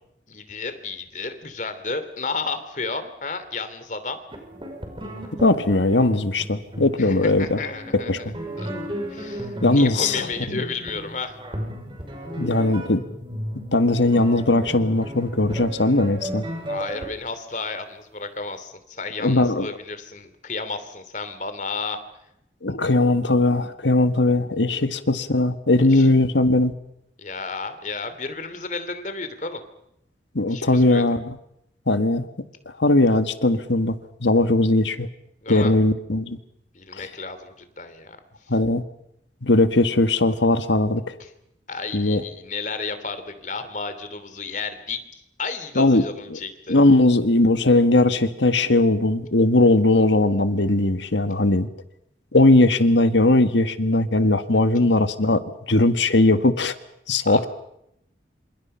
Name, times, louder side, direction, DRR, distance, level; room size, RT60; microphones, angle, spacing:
voice 1, 0.3-4.2 7.1-8.3 8.6-8.7 9.1-11.4 16.7-22.0 25.9-26.1 27.2-29.6 30.5-31.0 35.4-35.7 36.7-38.2 41.2-41.3 41.7-45.0 45.4-46.8 57.3-57.4, left 4 dB, 40° left, 10 dB, 3.0 m, -32 dB
sound 1, 4.3-17.1, equal, 30° right, 6.1 m, -34 dB
voice 2, 5.4-7.6 7.9-8.3 9.6-10.6 12.4-13.0 13.7-16.5 19.2-19.7 22.6-26.7 30.4-31.4 31.9-32.3 32.8-35.1 35.5-36.4 37.0-37.1 38.5-38.8 39.4-41.1 41.9-42.2 45.8-46.1 46.3-46.4 46.7-51.7 52.3-55.4 55.7-56.8 57.1-57.5, left 2 dB, 80° left, 10 dB, 1.7 m, -19 dB
27.5 x 27.0 x 5.7 m, 0.79 s
head